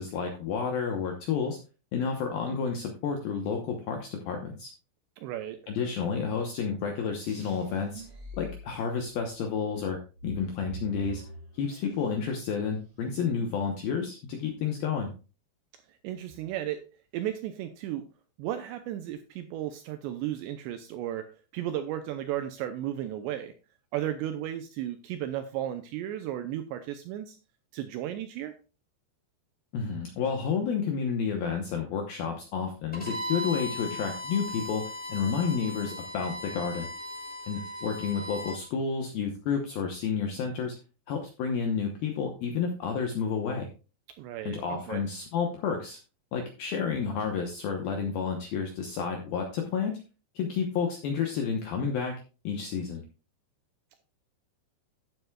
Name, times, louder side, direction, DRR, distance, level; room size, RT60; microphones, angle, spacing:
voice 1, 0.0-1.6 1.9-4.7 5.7-8.0 8.3-11.2 11.5-15.1 29.7-34.8 35.1-36.9 37.5-40.7 41.1-43.7 44.5-46.0 46.3-49.9 50.4-52.1 52.4-53.0, left 6 dB, 75° left, 3 dB, 2.1 m, -30 dB
voice 2, 5.2-5.6 15.9-16.8 17.1-18.1 18.4-23.5 23.9-27.4 27.7-28.6 44.2-45.0, right 12 dB, 85° right, 9 dB, 2.5 m, -34 dB
sound 1, 7.2-9.3 9.7-12.3 12.6-13.2, right 1 dB, 30° right, 3.1 m, -43 dB
Bowed string instrument, 32.9-38.6, left 1 dB, 10° left, 0.5 m, -37 dB
14.5 x 7.9 x 2.3 m, 0.33 s
omnidirectional pair, 5.6 m